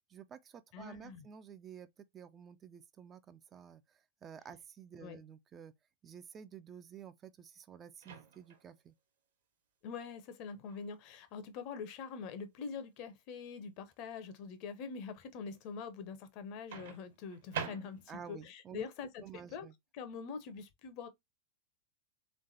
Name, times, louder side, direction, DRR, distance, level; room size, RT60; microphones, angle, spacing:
voice 1, 0.1-5.7 6.0-8.9 18.1-18.9 19.2-19.7, right 7 dB, 25° right, 0.4 m, -51 dB
voice 2, 0.7-1.2 5.0-5.2 9.8-19.2 19.5-19.7 19.9-21.1, left 5 dB, 40° left, 0.7 m, -44 dB
Microwave oven, 8.0-8.7 10.7-10.9 16.7-18.3, right 7 dB, 60° right, 1.1 m, -44 dB
3.6 x 3.2 x 2.6 m
figure-of-eight pair, 90°, 0 cm